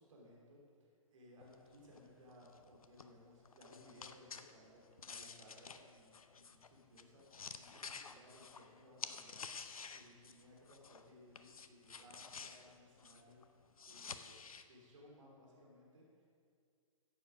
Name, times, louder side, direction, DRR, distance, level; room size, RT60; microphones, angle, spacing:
voice 1, 0.0-13.4 13.9-14.3 14.6-16.3, left 1 dB, 65° right, -3 dB, 3.3 m, -61 dB
sound 1, 1.4-11.1 11.4-14.6, left 5 dB, 80° left, 0.7 m, -51 dB
14.0 x 8.0 x 5.0 m, 2.2 s
figure-of-eight pair, 125°, 18 cm